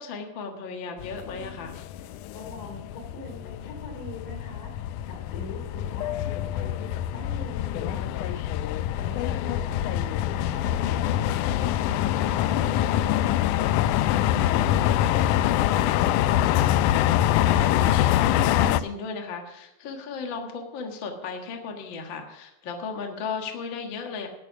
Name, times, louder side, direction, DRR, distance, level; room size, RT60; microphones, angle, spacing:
voice 1, 0.0-1.7 9.4-9.7 18.4-24.3, left 5 dB, 50° left, 3 dB, 1.6 m, -35 dB
sound 1, 1.0-18.8, left 12 dB, 85° left, 1.8 m, -25 dB
voice 2, 2.0-4.7 5.0-8.4 9.0-13.8, left 2 dB, 65° left, 1 dB, 4.6 m, -43 dB
13.0 x 9.6 x 5.9 m, 0.87 s
omnidirectional pair, 4.1 m